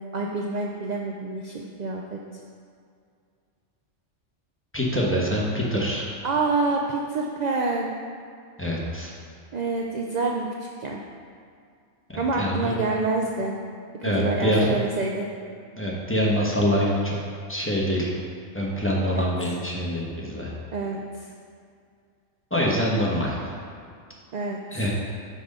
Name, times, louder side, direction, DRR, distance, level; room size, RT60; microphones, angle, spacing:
voice 1, 0.0-2.2 6.2-7.9 9.5-10.5 10.8-11.0 12.2-13.5 14.0-15.3 19.2-19.3 20.7-21.0 24.3-24.6, right 3 dB, 60° right, 0 dB, 0.4 m, -27 dB
voice 2, 4.7-6.1 8.6-9.1 12.1-12.7 14.0-14.8 15.8-17.2 17.5-18.1 18.5-20.5 22.5-23.4 24.7-24.9, equal, 10° left, -5 dB, 0.9 m, -25 dB
6.0 x 5.0 x 5.4 m, 2.3 s
omnidirectional pair, 1.3 m